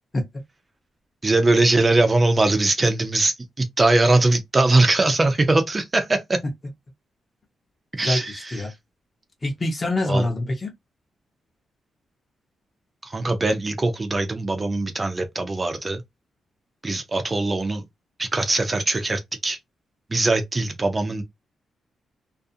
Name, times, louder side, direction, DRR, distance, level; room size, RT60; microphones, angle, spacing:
voice 1, 1.2-6.4 8.0-8.3 10.1-10.2 13.1-16.0 16.8-17.8 18.2-19.6 20.1-21.2, right 2 dB, 20° right, 0.4 m, -21 dB
voice 2, 8.0-8.7 9.4-10.7, left 1 dB, 25° left, 0.6 m, -25 dB
2.4 x 2.3 x 2.6 m
wide cardioid pair, 150°, 0 cm